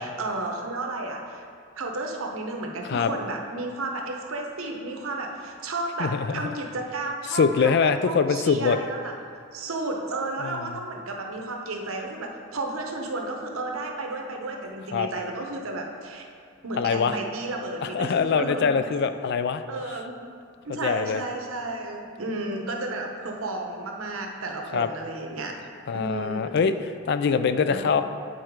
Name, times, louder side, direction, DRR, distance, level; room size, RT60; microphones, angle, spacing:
voice 1, 0.0-1.4 1.7-9.1 9.5-16.3 16.6-18.7 19.7-20.1 20.6-25.6 25.9-26.6 27.7-27.9, right 2 dB, 80° right, 2 dB, 0.9 m, -32 dB
voice 2, 6.0-6.5 7.3-8.8 10.4-10.8 14.9-15.1 16.8-17.2 17.8-19.6 20.8-21.2 24.7-24.9 25.9-26.7 27.1-28.0, left 6 dB, 55° left, 10 dB, 0.3 m, -23 dB
8.7 x 4.4 x 4.6 m, 2.3 s
head